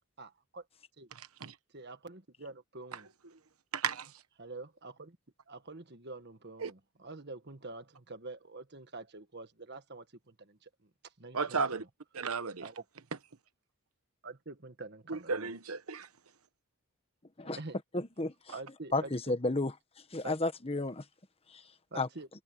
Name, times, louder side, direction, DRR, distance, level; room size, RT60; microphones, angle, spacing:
voice 1, 0.2-0.6 1.0-1.1 1.7-3.1 4.4-5.2 5.5-11.9 12.6-12.8 14.2-15.5 17.4-17.8 18.5-19.1 20.2-20.4 21.9-22.3, right 3 dB, 50° right, 1.6 m, -46 dB
voice 2, 3.7-4.1 6.6-6.7 11.3-11.8 12.1-12.6 15.1-16.1, right 5 dB, 75° right, 1.2 m, -33 dB
voice 3, 17.9-18.5 18.9-19.7 20.1-21.0 21.5-21.6 21.9-22.1, left 2 dB, 25° left, 1.2 m, -32 dB
head